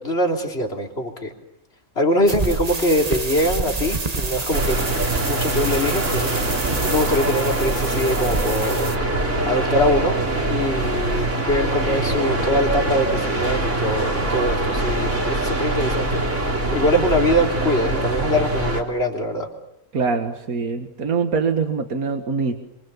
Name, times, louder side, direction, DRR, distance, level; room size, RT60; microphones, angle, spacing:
voice 1, 0.0-1.3 2.0-6.4 6.8-8.9 9.4-10.2 10.5-16.2 16.7-19.5, left 1 dB, 45° left, 2 dB, 3.9 m, -23 dB
sound 1, 2.3-9.0, right 3 dB, 30° right, 1.3 m, -28 dB
sound 2, 4.5-18.8, right 2 dB, 55° right, 3.8 m, -23 dB
voice 2, 19.9-22.5, right 5 dB, 75° right, 5 dB, 2.2 m, -23 dB
28.0 x 26.0 x 7.2 m, 0.81 s
omnidirectional pair, 1.5 m